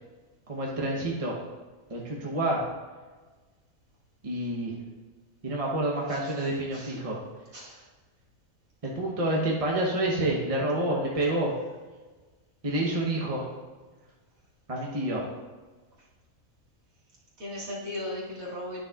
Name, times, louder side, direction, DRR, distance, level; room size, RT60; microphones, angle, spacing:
voice 1, 0.5-1.4 1.9-2.6 4.2-4.8 5.4-7.2 8.8-11.5 12.6-13.5 14.7-15.3, right 1 dB, 30° right, -3 dB, 0.9 m, -28 dB
voice 2, 6.1-7.0 7.5-7.8 17.4-18.8, left 1 dB, 65° right, -6 dB, 2.3 m, -38 dB
11.0 x 6.4 x 2.4 m, 1.4 s
omnidirectional pair, 1.5 m